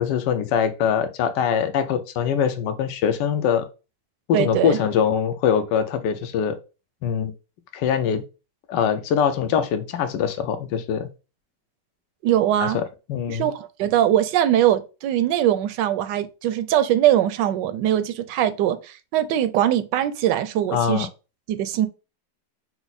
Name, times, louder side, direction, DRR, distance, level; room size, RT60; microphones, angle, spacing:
voice 1, 0.0-3.7 4.3-6.6 7.0-7.3 7.7-8.2 8.7-11.1 12.6-12.8 13.1-13.5 20.7-21.1, left 8 dB, 85° left, 1.3 m, -23 dB
voice 2, 4.3-4.8 12.2-12.8 13.3-21.1 21.5-21.9, right 11 dB, 85° right, 1.2 m, -21 dB
5.8 x 2.0 x 4.0 m
omnidirectional pair, 1.8 m